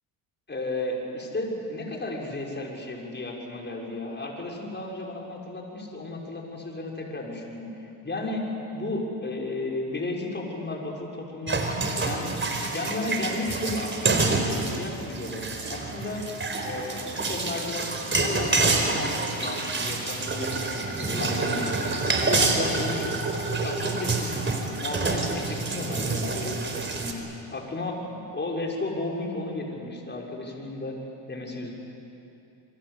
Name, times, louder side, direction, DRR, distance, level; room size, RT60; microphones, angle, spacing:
voice 1, 0.5-8.4 8.7-11.6 12.0-16.2 16.6-23.1 23.6-24.4 24.7-31.0 31.3-31.7, left 2 dB, 25° left, -1 dB, 6.1 m, -34 dB
sound 1, 11.5-27.1, right 3 dB, 25° right, 4.3 m, -27 dB
27.5 x 23.5 x 8.4 m, 2.8 s
supercardioid pair, 90°, 45 cm